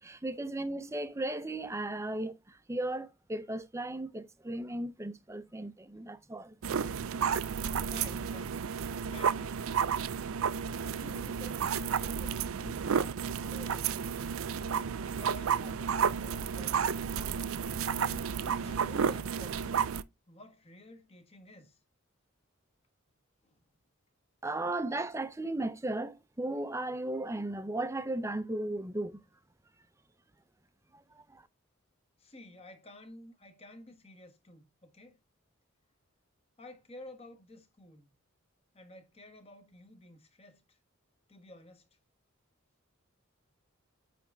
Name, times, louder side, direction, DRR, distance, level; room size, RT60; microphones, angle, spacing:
voice 1, 0.0-6.6 24.4-29.2 30.9-31.5, right 2 dB, 15° right, 0.6 m, -36 dB
sound 1, 6.6-20.0, right 7 dB, 80° right, 0.5 m, -32 dB
voice 2, 7.8-8.7 9.1-9.6 10.7-13.9 14.7-17.1 17.9-19.9 20.3-21.8 23.4-23.6 32.2-35.2 36.6-38.1 38.7-40.8 41.3-41.9, left 1 dB, 30° left, 1.3 m, -52 dB
8.8 x 3.4 x 3.6 m
head